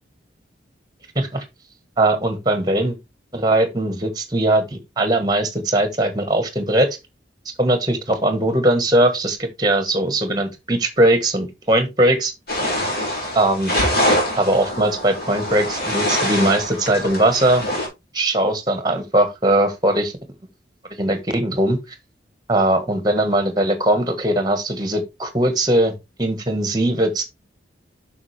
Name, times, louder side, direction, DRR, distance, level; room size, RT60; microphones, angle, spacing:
voice 1, 2.0-3.0 3.3-6.9 7.6-12.3 13.3-13.7 14.4-17.7 18.1-20.1 20.9-21.8 22.5-27.2, right 1 dB, 20° right, 1.4 m, -20 dB
sound 1, 12.5-17.9, left 1 dB, 55° left, 4.3 m, -24 dB
7.2 x 6.1 x 3.3 m
head